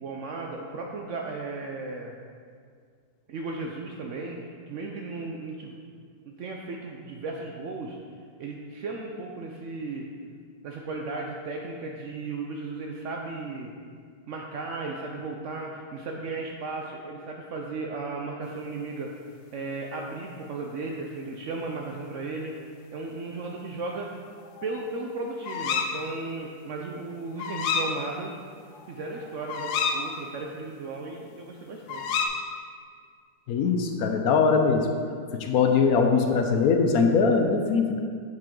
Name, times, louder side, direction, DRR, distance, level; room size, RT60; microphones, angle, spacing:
voice 1, 0.0-2.1 3.3-4.4 4.7-5.8 6.2-8.0 8.4-10.1 10.6-13.7 14.3-19.1 19.5-22.6 22.9-24.1 24.6-28.3 28.9-32.1, right 3 dB, 80° right, 0 dB, 0.6 m, -35 dB
sound 1, 24.4-25.0 25.4-25.9 27.4-27.9 28.3-28.4 28.7-30.0 31.9-32.3, left 6 dB, 85° left, 1.4 m, -29 dB
voice 2, 33.5-34.9 35.4-38.0, left 5 dB, 70° left, 4 dB, 0.9 m, -21 dB
7.6 x 7.6 x 3.7 m, 2.1 s
omnidirectional pair, 2.0 m